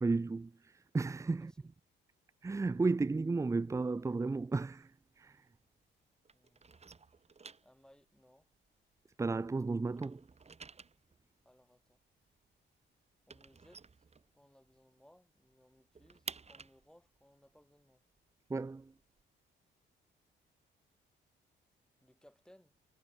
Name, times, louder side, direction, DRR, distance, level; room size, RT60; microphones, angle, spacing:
voice 1, 0.0-1.5 2.4-5.5 9.2-10.2 18.5-18.9, right 3 dB, 15° right, 0.5 m, -34 dB
sound 1, 4.5-6.0 6.2-9.5 9.8-14.8 15.1-15.2 15.5-19.2, right 4 dB, 30° right, 5.2 m, -53 dB
voice 2, 6.3-6.8 7.6-8.5 11.4-12.0 13.3-13.8 14.3-18.0 22.0-22.7, equal, 5° left, 4.1 m, -64 dB
cardioid pair, 90°, 20 cm